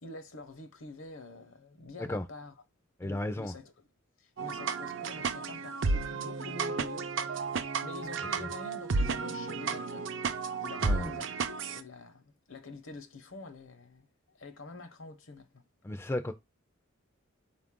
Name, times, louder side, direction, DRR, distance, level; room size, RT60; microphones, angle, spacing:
voice 1, 0.0-2.5 3.0-3.7 4.2-7.5 7.8-15.6, left 3 dB, 70° left, 0.8 m, -47 dB
voice 2, 3.0-3.5 8.4-8.5 10.8-11.2 15.8-16.3, left 1 dB, 10° left, 0.3 m, -34 dB
sound 1, 4.4-11.8, right 4 dB, 60° right, 0.5 m, -33 dB
5.0 x 2.5 x 3.6 m
head